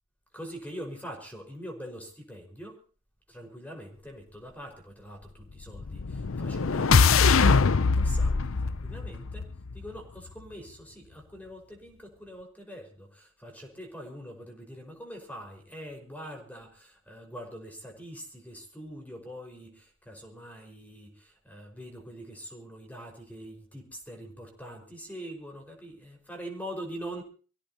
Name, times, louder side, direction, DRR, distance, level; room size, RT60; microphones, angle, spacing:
voice 1, 0.3-2.8 3.3-9.5 9.7-27.2, equal, 10° left, 3 dB, 5.1 m, -43 dB
sound 1, 5.7-10.0, left 4 dB, 75° left, 0.7 m, -23 dB
25.5 x 16.5 x 2.9 m, 0.38 s
head